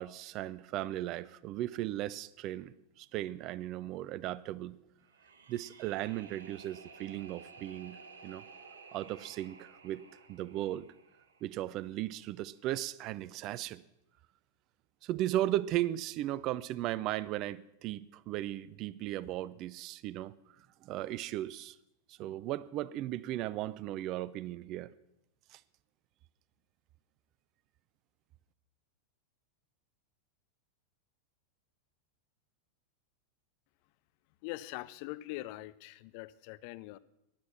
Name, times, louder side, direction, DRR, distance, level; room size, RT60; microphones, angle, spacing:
voice 1, 0.0-4.8 5.5-8.0 8.2-8.4 8.9-10.0 10.3-10.9 11.4-13.8 15.0-20.3 20.8-21.8 22.1-24.9 25.5-25.6, right 14 dB, 40° right, 20 dB, 0.4 m, -36 dB
sound 1, 5.0-12.1, right 4 dB, 65° right, 1.2 m, -54 dB
voice 2, 34.4-37.0, left 18 dB, 45° left, 16 dB, 0.5 m, -43 dB
15.0 x 10.5 x 5.9 m, 0.84 s
figure-of-eight pair, 90°, 0 cm